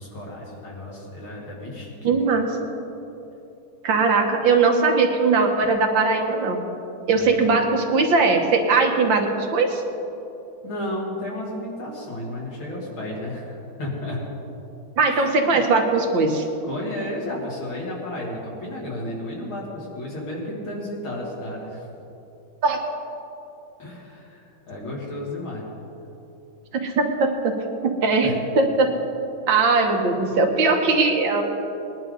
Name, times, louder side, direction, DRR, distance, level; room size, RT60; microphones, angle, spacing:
voice 1, 0.0-2.1 7.1-7.6 10.6-14.3 15.1-15.6 16.6-21.9 23.8-25.7 28.2-28.4 30.2-30.4, left 1 dB, 85° left, -4 dB, 3.7 m, -33 dB
voice 2, 2.0-2.7 3.8-6.6 7.1-9.8 15.0-16.5 22.6-22.8 26.7-27.5 27.8-28.3 28.6-28.9 29.5-31.4, right 4 dB, 70° right, 3 dB, 2.0 m, -20 dB
20.0 x 11.0 x 4.0 m, 2.9 s
omnidirectional pair, 2.2 m